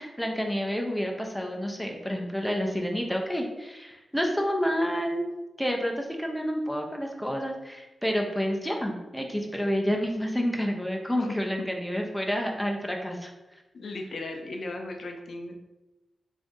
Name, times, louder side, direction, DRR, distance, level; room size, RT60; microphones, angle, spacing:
voice 1, 0.0-5.2 5.6-13.3, equal, 5° left, 1 dB, 0.5 m, -29 dB
voice 2, 13.7-15.5, left 2 dB, 65° left, 3 dB, 0.4 m, -36 dB
3.6 x 2.6 x 3.6 m, 1.0 s
wide cardioid pair, 115°, 0 cm